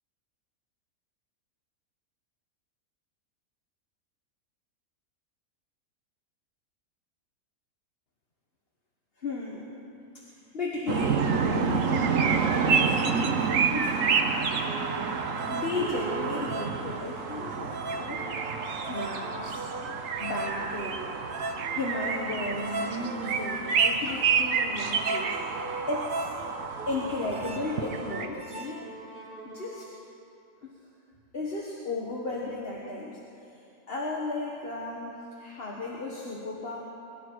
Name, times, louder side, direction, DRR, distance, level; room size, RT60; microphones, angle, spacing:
voice 1, 9.2-9.7 10.5-14.4 15.1-18.3 18.5-19.6 20.2-21.1 21.8-26.3 26.9-28.8 29.4-29.9 30.6-30.7 31.3-33.2 33.9-36.8, left 2 dB, 45° left, -4 dB, 1.8 m, -35 dB
sound 1, 10.9-28.3, right 5 dB, 70° right, 1.3 m, -28 dB
sound 2, 14.6-30.0, right 2 dB, 40° right, 1.4 m, -39 dB
23.0 x 12.0 x 4.8 m, 2.7 s
omnidirectional pair, 1.5 m